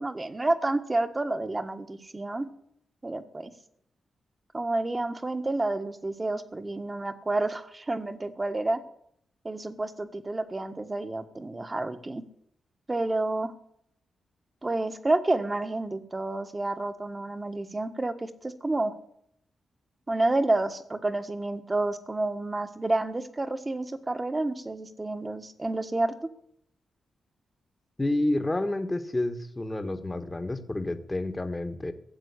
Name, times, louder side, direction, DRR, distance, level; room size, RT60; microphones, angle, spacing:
voice 1, 0.0-2.5 3.0-3.5 4.5-8.8 9.4-12.2 12.9-13.5 14.6-18.9 20.1-26.1, right 2 dB, 25° right, 10 dB, 1.6 m, -29 dB
voice 2, 28.0-31.9, left 1 dB, 20° left, 9 dB, 1.5 m, -29 dB
16.0 x 7.5 x 9.8 m, 0.71 s
cardioid pair, 80°, 0 cm